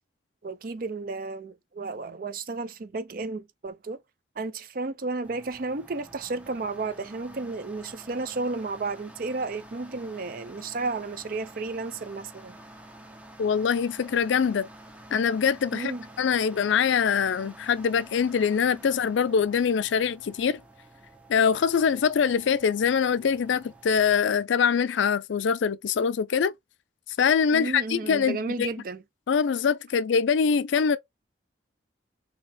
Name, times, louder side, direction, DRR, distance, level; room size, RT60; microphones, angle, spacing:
voice 1, 0.4-4.0 4.4-12.6 15.7-16.1 27.5-29.0, right 3 dB, 50° right, 0.5 m, -33 dB
sound 1, 5.2-24.2, right 1 dB, 5° right, 0.6 m, -49 dB
voice 2, 13.4-14.7 15.1-20.6 21.3-26.5 27.2-28.7 29.3-31.0, left 6 dB, 80° left, 0.4 m, -23 dB
4.0 x 2.8 x 3.3 m
head